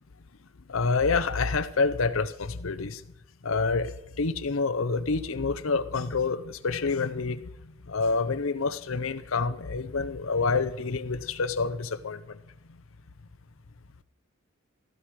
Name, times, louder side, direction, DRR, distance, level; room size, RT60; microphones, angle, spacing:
voice 1, 0.7-3.0 3.4-7.5 7.9-12.4, left 4 dB, 85° left, 12 dB, 0.7 m, -27 dB
15.0 x 13.0 x 4.7 m, 0.80 s
head